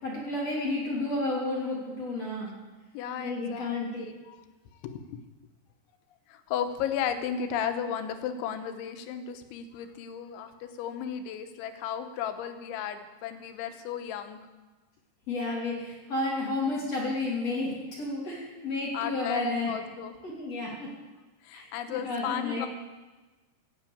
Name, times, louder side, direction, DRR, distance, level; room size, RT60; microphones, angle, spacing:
voice 1, 0.0-2.6 3.2-4.0 15.3-19.7 20.2-21.0 21.5-22.7, left 2 dB, 40° left, -3 dB, 3.4 m, -31 dB
voice 2, 2.9-4.4 4.8-5.2 6.3-14.4 18.9-20.1 21.4-22.7, left 8 dB, 90° left, 8 dB, 3.4 m, -34 dB
15.5 x 8.8 x 8.5 m, 1.2 s
omnidirectional pair, 5.2 m